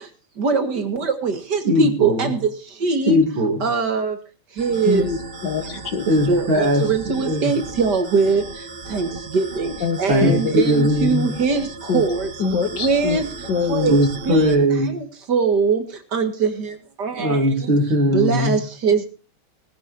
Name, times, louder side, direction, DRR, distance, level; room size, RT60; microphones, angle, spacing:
voice 1, 0.4-2.5 2.8-3.2 3.6-4.2 4.6-5.1 6.3-8.4 8.9-9.7 10.0-11.7 11.9-12.3 12.7-13.3 13.7-14.0 14.3-14.5 14.9-15.8 16.1-16.7 17.0-17.5 18.1-19.1, right 5 dB, 55° right, 7 dB, 2.3 m, -21 dB
voice 2, 1.6-2.4 3.1-3.7 6.1-7.5 10.1-11.3 13.9-14.9 17.2-18.6, equal, 70° right, 3 dB, 3.9 m, -19 dB
sound 1, 4.6-14.6, right 3 dB, 30° right, 1.6 m, -36 dB
voice 3, 4.8-6.0 9.8-10.6 11.9-12.0 12.4-13.2 13.5-13.9, left 5 dB, 60° left, 10 dB, 2.1 m, -24 dB
19.0 x 14.5 x 2.7 m, 0.35 s
omnidirectional pair, 2.3 m